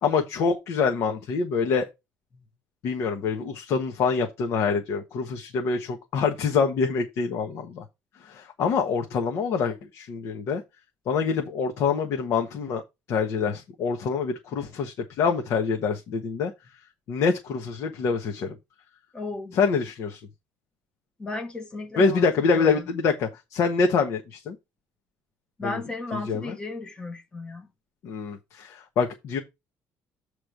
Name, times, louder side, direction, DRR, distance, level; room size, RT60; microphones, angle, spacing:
voice 1, 0.0-1.9 2.8-7.8 8.2-10.6 11.1-12.8 13.1-16.5 17.1-18.5 19.5-20.2 22.0-24.6 25.6-25.8 26.1-26.6 28.0-29.4, left 5 dB, 55° left, 1.2 m, -25 dB
voice 2, 19.1-19.6 21.2-22.8 25.6-27.7, left 2 dB, 15° left, 1.2 m, -35 dB
8.6 x 3.2 x 6.4 m
cardioid pair, 165°, 6 cm